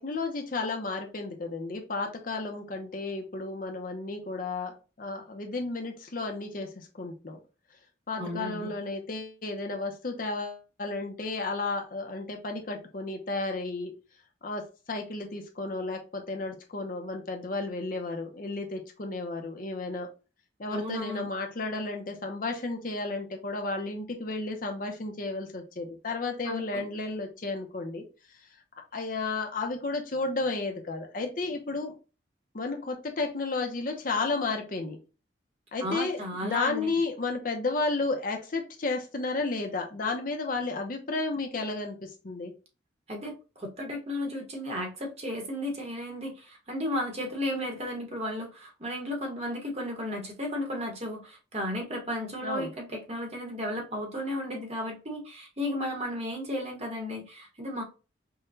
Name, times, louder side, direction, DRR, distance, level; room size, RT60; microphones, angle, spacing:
voice 1, 0.0-7.4 8.1-13.9 14.4-20.1 20.6-28.0 28.9-31.9 32.5-35.0 35.7-42.5 52.4-52.7, left 3 dB, 45° left, 3 dB, 0.7 m, -33 dB
voice 2, 8.2-8.7 20.7-21.3 26.4-26.8 35.8-37.0 43.1-43.3 43.6-57.8, left 1 dB, 35° right, 1 dB, 1.0 m, -34 dB
5.5 x 2.2 x 2.6 m, 0.32 s
head